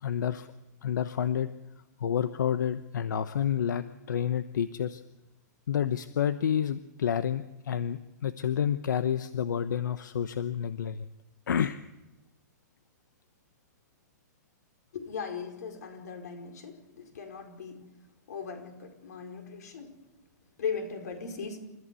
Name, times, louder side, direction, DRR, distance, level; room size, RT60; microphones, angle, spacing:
voice 1, 0.0-0.5 0.8-1.5 2.0-5.0 5.7-11.0 11.5-11.8, left 8 dB, 90° left, 12 dB, 0.9 m, -29 dB
voice 2, 14.9-17.8 18.3-20.0 20.6-21.7, left 6 dB, 65° left, 5 dB, 4.9 m, -38 dB
29.0 x 14.5 x 8.4 m, 1.0 s
hypercardioid pair, 170°, 10 cm